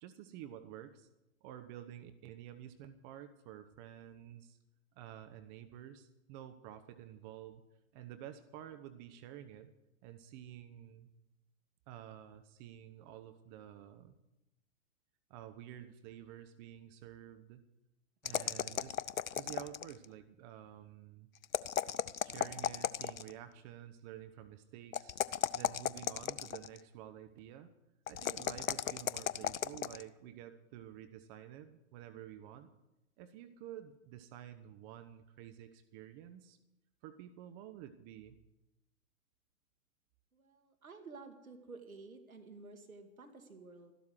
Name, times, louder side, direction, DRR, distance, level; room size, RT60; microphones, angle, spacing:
voice 1, 0.0-1.1 1.4-4.6 5.0-7.6 7.9-9.7 10.0-11.1 11.9-14.2 15.3-17.6 18.2-19.0 19.3-21.3 22.2-25.2 25.5-27.7 28.1-32.7 33.2-36.6 37.0-38.3, right 11 dB, 35° right, 10 dB, 1.0 m, -50 dB
sound 1, 18.2-20.0 21.4-23.4 24.9-26.8 28.1-30.0, left 9 dB, 75° left, 0.7 m, -35 dB
voice 2, 40.3-43.9, right 3 dB, 85° right, 6 dB, 2.2 m, -52 dB
13.5 x 12.0 x 6.3 m, 0.92 s
figure-of-eight pair, 115°, 41 cm